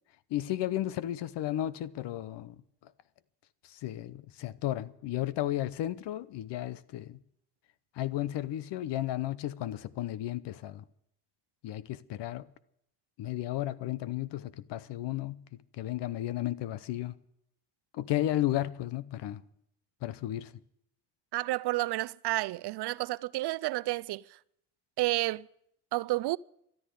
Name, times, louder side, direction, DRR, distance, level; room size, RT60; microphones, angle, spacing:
voice 1, 0.3-2.6 3.7-7.2 8.0-10.8 11.6-12.5 13.2-15.4 15.8-17.2 17.9-19.4 20.0-20.5, left 13 dB, 75° left, 0.8 m, -33 dB
voice 2, 21.3-24.2 25.0-25.5 25.9-26.4, right 18 dB, 70° right, 0.5 m, -30 dB
13.5 x 10.5 x 9.2 m
supercardioid pair, 65°, 42 cm